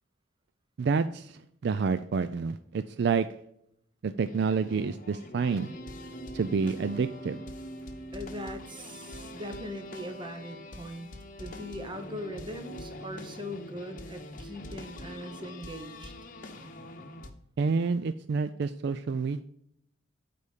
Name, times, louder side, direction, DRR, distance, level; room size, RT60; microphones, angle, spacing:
voice 1, 0.8-3.3 4.0-5.7 6.3-7.4 17.6-19.4, right 5 dB, 60° right, 12 dB, 0.3 m, -28 dB
sound 1, 4.2-17.3, left 1 dB, 45° left, 0.9 m, -43 dB
voice 2, 8.1-11.1 11.4-16.1, left 1 dB, 25° right, 7 dB, 0.9 m, -40 dB
8.3 x 4.2 x 5.1 m, 0.72 s
head